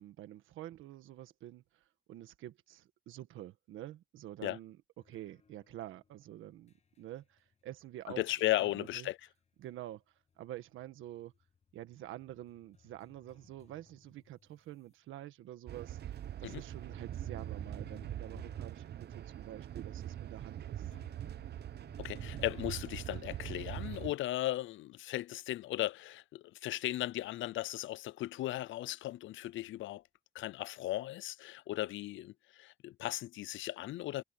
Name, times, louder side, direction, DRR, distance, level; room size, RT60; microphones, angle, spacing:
voice 1, 0.0-1.6 2.1-4.8 5.0-8.2 8.6-9.1 9.6-10.0 10.4-11.3 11.7-16.0 16.4-20.9, right 13 dB, 85° right, 1.5 m, -48 dB
sound 1, 5.0-10.0 10.3-14.9 15.5-15.6 16.4-22.8, left 6 dB, 35° left, 1.1 m, -61 dB
voice 2, 8.1-9.2 16.4-16.6 22.0-30.0 30.3-34.2, left 15 dB, 75° left, 0.5 m, -36 dB
sound 2, 15.7-24.1, right 11 dB, 55° right, 0.8 m, -43 dB
cardioid pair, 90°, 20 cm